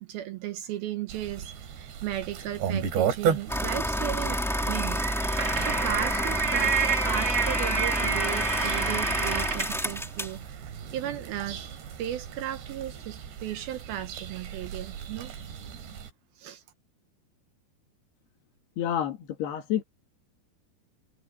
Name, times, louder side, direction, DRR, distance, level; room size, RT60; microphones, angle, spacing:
voice 1, 0.0-5.1 5.6-11.7 12.0-15.3 16.4-16.6, right 12 dB, 75° right, 2.5 m, -36 dB
sound 1, 1.1-16.1, right 8 dB, 90° right, 5.0 m, -35 dB
sound 2, 3.5-10.4, equal, ahead, 2.0 m, -29 dB
sound 3, 5.0-9.8, right 5 dB, 25° right, 3.1 m, -29 dB
voice 2, 18.8-19.8, left 10 dB, 70° left, 4.2 m, -29 dB
omnidirectional pair, 4.9 m